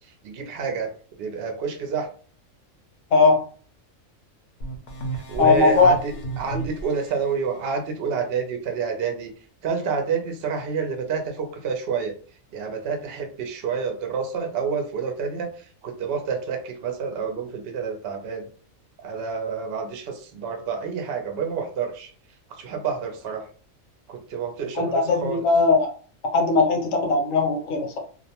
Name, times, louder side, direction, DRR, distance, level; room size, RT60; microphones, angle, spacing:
voice 1, 0.2-2.1 5.1-9.3 9.6-12.1 12.5-18.4 19.0-22.1 22.6-23.4 24.1-25.5, right 6 dB, 60° right, 4 dB, 0.7 m, -29 dB
voice 2, 3.1-3.4 5.4-5.9 6.5-6.7 24.8-25.9 26.3-28.0, left 3 dB, 75° left, 2 dB, 1.1 m, -19 dB
sound 1, 4.6-7.3, right 3 dB, 60° left, 0.8 m, -33 dB
2.4 x 2.1 x 2.8 m, 0.42 s
omnidirectional pair, 1.4 m